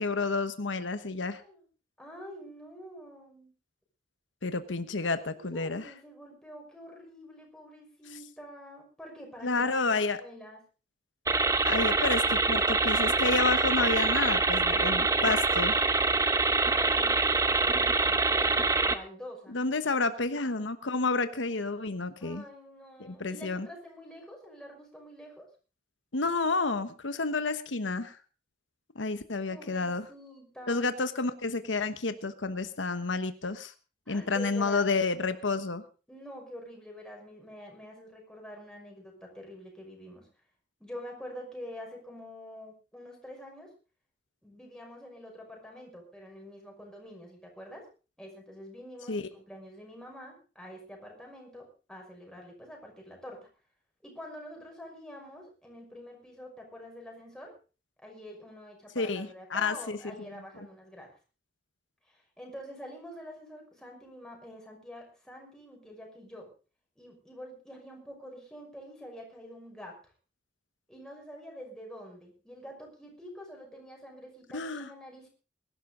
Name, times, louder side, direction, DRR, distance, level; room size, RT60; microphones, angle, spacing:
voice 1, 0.0-1.4 4.4-5.9 9.4-10.2 11.6-15.8 19.5-22.4 23.0-23.7 26.1-28.2 28.9-30.1 30.7-33.7 34.1-35.8 49.1-49.2 58.9-60.1 74.5-74.9, left 3 dB, 90° left, 10 dB, 1.2 m, -30 dB
voice 2, 2.0-3.5 5.0-5.1 5.5-9.7 10.2-10.6 16.7-19.6 22.2-25.5 29.5-30.9 34.1-34.8 36.1-40.3 40.8-43.7 44.4-47.9 48.2-53.5 54.0-57.5 58.0-61.1 62.1-66.5 67.0-70.1 70.9-75.3, equal, 5° left, 0 dB, 6.0 m, -46 dB
sound 1, 11.3-18.9, right 3 dB, 15° right, 1.0 m, -25 dB
22.0 x 12.0 x 3.9 m, 0.34 s
head